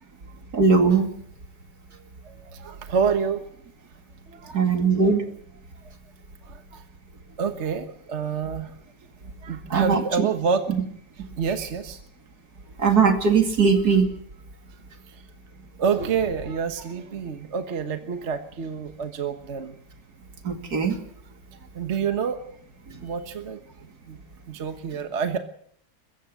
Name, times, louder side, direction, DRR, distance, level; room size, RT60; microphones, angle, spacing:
voice 1, 0.5-1.1 4.5-5.2 9.7-10.3 12.8-14.1 20.4-20.9, right 5 dB, 70° right, 6 dB, 3.0 m, -19 dB
voice 2, 2.2-3.5 4.3-4.6 4.9-5.0 6.4-6.8 7.4-8.7 9.4-10.7 11.4-12.0 15.1-15.2 15.8-19.7 21.7-22.4 23.0-24.2 24.5-25.4, right 6 dB, 45° right, 8 dB, 1.4 m, -28 dB
22.5 x 15.0 x 8.0 m, 0.63 s
omnidirectional pair, 1.7 m